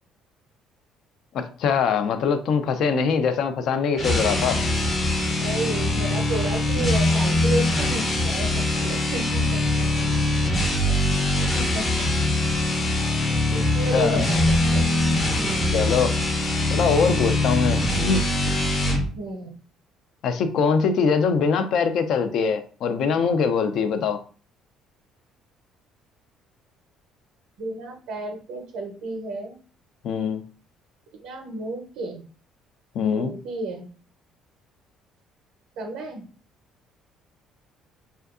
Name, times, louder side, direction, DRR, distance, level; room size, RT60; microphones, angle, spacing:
voice 1, 1.3-4.6 13.9-14.2 15.7-16.1 16.7-18.2 20.2-24.2 30.0-30.4 32.9-33.3, left 6 dB, 65° left, 9 dB, 0.4 m, -22 dB
sound 1, 3.9-19.1, left 2 dB, 45° left, 0.8 m, -22 dB
voice 2, 5.4-10.1 10.9-11.2 11.5-12.1 13.5-14.8 15.3-16.0 19.1-19.6 27.6-29.6 31.1-32.2 33.1-33.9 35.8-36.3, right 2 dB, 80° right, 1 dB, 0.5 m, -32 dB
2.7 x 2.2 x 2.4 m, 0.40 s
supercardioid pair, 75°, 0 cm